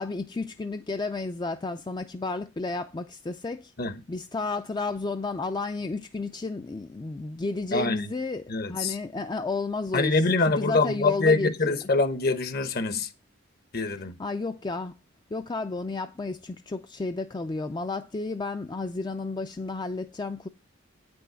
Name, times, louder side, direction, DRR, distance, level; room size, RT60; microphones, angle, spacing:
voice 1, 0.0-3.7 4.1-11.9 14.2-14.9 15.3-20.5, left 3 dB, 20° left, 0.4 m, -32 dB
voice 2, 7.7-8.1 8.5-8.9 9.9-13.1 13.7-14.2, left 3 dB, 50° left, 1.0 m, -25 dB
8.8 x 6.1 x 5.7 m
head